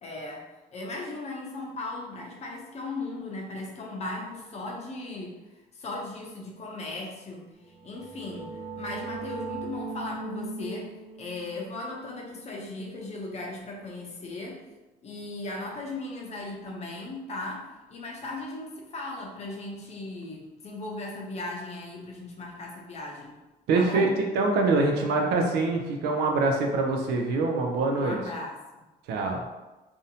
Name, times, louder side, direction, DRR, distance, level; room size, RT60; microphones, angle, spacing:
voice 1, 0.0-0.4 0.7-5.4 5.7-7.4 7.8-14.6 15.0-23.4 23.7-24.2 28.0-28.6, left 2 dB, 40° left, -1 dB, 0.6 m, -37 dB
sound 1, 7.7-13.2, right 3 dB, 15° right, 0.4 m, -39 dB
voice 2, 23.7-24.1 24.3-28.2 29.1-29.4, right 3 dB, 80° right, 2 dB, 0.5 m, -24 dB
2.6 x 2.1 x 2.7 m, 1.1 s
cardioid pair, 110°, 17 cm